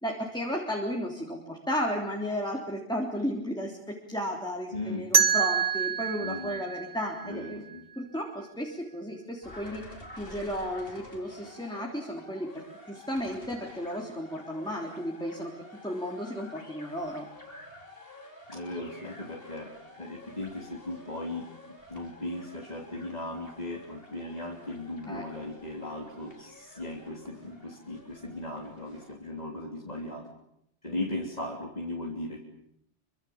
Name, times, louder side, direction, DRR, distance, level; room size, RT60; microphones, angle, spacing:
voice 1, 0.0-7.6 8.0-9.8 10.1-15.5 15.8-17.3 25.1-25.2, equal, 5° left, -1 dB, 3.5 m, -34 dB
voice 2, 4.7-5.0 6.2-6.6 7.2-7.8 18.5-19.7 20.0-21.5 21.9-30.3 30.8-32.4, left 2 dB, 35° left, -2 dB, 3.4 m, -37 dB
sound 1, 5.1-8.0, right 7 dB, 55° right, 1.8 m, -27 dB
sound 2, 9.4-29.1, left 1 dB, 55° left, 4.5 m, -50 dB
26.5 x 25.0 x 7.2 m, 0.76 s
omnidirectional pair, 1.2 m